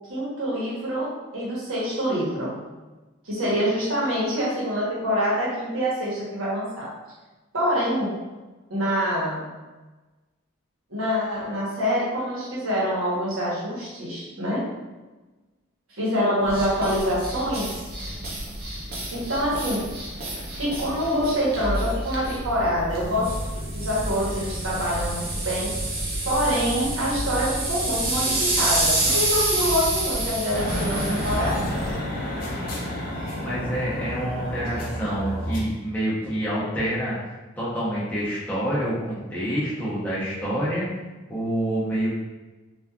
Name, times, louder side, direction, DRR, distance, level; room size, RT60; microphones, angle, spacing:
voice 1, 0.1-2.5 3.2-6.9 7.5-8.1 8.7-9.4 10.9-14.6 15.9-17.7 19.1-19.8 20.5-23.3 23.7-25.7 26.3-31.6, equal, 85° right, -6 dB, 1.0 m, -25 dB
sound 1, 16.5-32.0, right 1 dB, 45° right, 0.6 m, -28 dB
sound 2, 30.5-35.6, left 1 dB, 45° left, 0.5 m, -30 dB
voice 2, 33.4-40.9 41.3-42.2, right 1 dB, 10° left, -9 dB, 0.7 m, -27 dB
3.0 x 2.4 x 2.3 m, 1.2 s
head